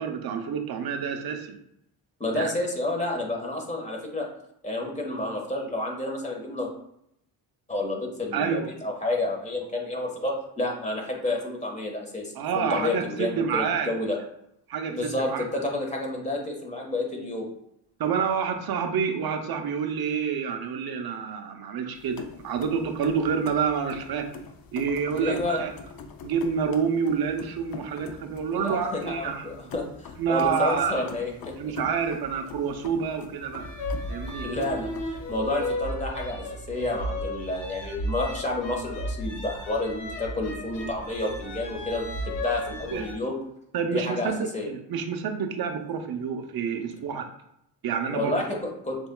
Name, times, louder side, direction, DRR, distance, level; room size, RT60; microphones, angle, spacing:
voice 1, 0.0-1.6 2.3-2.5 8.3-8.7 12.3-13.9 14.7-15.4 18.0-24.3 24.7-25.7 26.2-29.7 30.2-31.1 31.6-33.6 34.1-34.5 42.9-43.1 43.7-47.3 47.8-48.6, right 6 dB, 60° right, 5 dB, 0.8 m, -28 dB
voice 2, 2.2-4.3 4.6-6.7 7.7-14.2 14.9-17.5 25.1-25.6 28.5-31.7 34.4-34.9 35.3-43.4 43.9-44.7 48.1-49.0, left 2 dB, 15° left, 0 dB, 1.5 m, -30 dB
sound 1, 21.9-35.4, left 4 dB, 55° left, 0.7 m, -43 dB
sound 2, 33.6-43.1, left 1 dB, 90° left, 1.2 m, -34 dB
6.9 x 2.7 x 2.3 m, 0.76 s
supercardioid pair, 65°, 43 cm